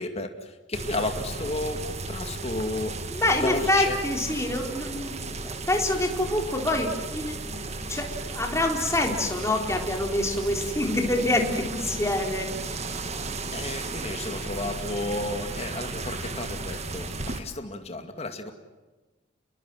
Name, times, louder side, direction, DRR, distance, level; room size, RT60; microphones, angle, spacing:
voice 1, 0.0-3.0 3.4-4.0 13.5-18.5, left 2 dB, 30° left, 6 dB, 2.3 m, -32 dB
sound 1, 0.7-17.4, right 3 dB, 35° right, 1.7 m, -35 dB
voice 2, 3.1-8.1 8.3-12.5, left 1 dB, 15° left, 2 dB, 3.7 m, -26 dB
29.5 x 22.0 x 7.6 m, 1.2 s
head